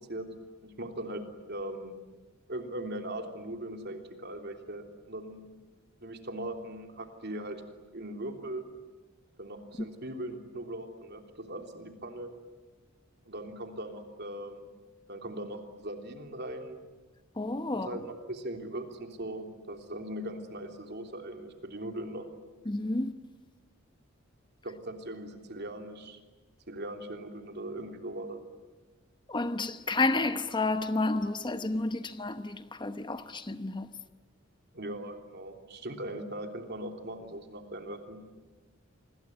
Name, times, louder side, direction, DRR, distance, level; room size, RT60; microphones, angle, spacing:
voice 1, 0.6-1.9 2.5-5.5 6.0-7.6 7.9-8.6 9.4-12.3 13.2-14.7 15.1-16.8 17.8-22.3 24.6-26.2 26.7-28.4 34.7-38.2, right 1 dB, 55° right, 3.3 m, -39 dB
voice 2, 17.4-18.0 22.7-23.1 29.3-33.9, left 2 dB, 25° left, 0.9 m, -30 dB
28.0 x 21.5 x 9.8 m
head